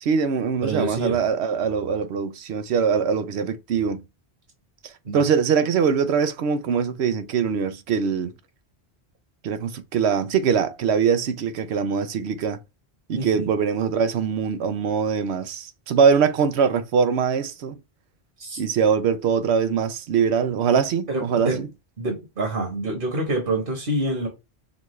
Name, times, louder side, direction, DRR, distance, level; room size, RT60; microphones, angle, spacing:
voice 1, 0.0-4.0 4.8-8.3 9.4-12.6 13.1-17.8 18.6-21.7, right 6 dB, 85° right, 0.9 m, -22 dB
voice 2, 0.6-1.2 5.0-5.2 13.1-13.5 18.4-18.6 21.1-21.6 22.0-24.3, right 2 dB, 55° right, 1.3 m, -27 dB
6.1 x 2.3 x 3.1 m
omnidirectional pair, 1.1 m